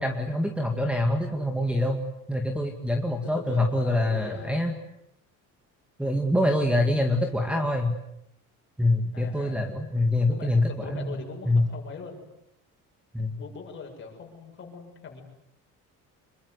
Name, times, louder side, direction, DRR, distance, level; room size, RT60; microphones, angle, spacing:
voice 1, 0.0-2.0 2.3-4.7 6.0-7.9 8.8-11.6 13.1-13.4, left 1 dB, 5° right, 5 dB, 2.2 m, -25 dB
voice 2, 3.2-4.6 6.6-7.8 9.1-9.6 10.2-12.2 13.3-15.2, left 5 dB, 35° left, 2 dB, 7.4 m, -41 dB
26.5 x 22.5 x 9.8 m, 0.80 s
cardioid pair, 155°, 33 cm